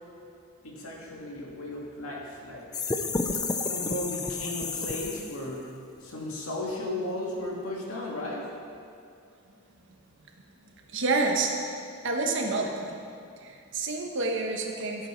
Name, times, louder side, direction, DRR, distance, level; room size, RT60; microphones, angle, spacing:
voice 1, 0.6-2.9 3.6-5.7 6.0-8.5, left 1 dB, 80° left, -3 dB, 2.3 m, -35 dB
sound 1, 2.7-5.5, left 3 dB, 20° left, 0.5 m, -31 dB
voice 2, 10.9-11.5 12.0-13.0 13.4-15.1, right 3 dB, 60° right, 2 dB, 1.2 m, -28 dB
14.5 x 8.2 x 4.6 m, 2.4 s
head